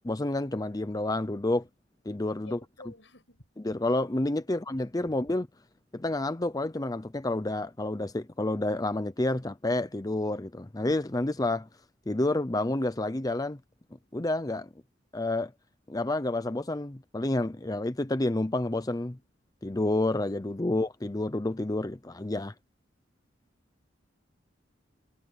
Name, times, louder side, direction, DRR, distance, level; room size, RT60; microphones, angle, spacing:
voice 1, 0.0-1.6 2.1-2.6 3.6-5.5 5.9-11.7 12.1-13.6 14.1-14.7 15.1-15.5 15.9-19.2 19.6-22.5, left 2 dB, 20° left, 0.7 m, -29 dB
voice 2, 2.4-3.4, left 2 dB, 85° left, 7.8 m, -51 dB
head